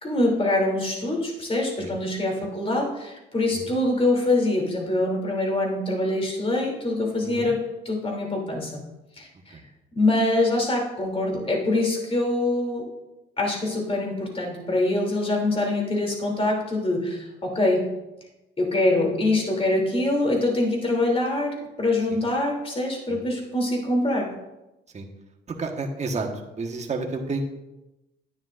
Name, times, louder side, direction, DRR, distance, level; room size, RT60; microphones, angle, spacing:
voice 1, 0.0-8.8 9.2-9.6 9.9-12.8 13.4-17.9 18.6-24.3, left 2 dB, 30° left, 0 dB, 2.8 m, -24 dB
voice 2, 25.6-27.4, right 3 dB, 35° right, 2 dB, 1.3 m, -31 dB
10.5 x 9.5 x 2.5 m, 0.98 s
cardioid pair, 90°, 20 cm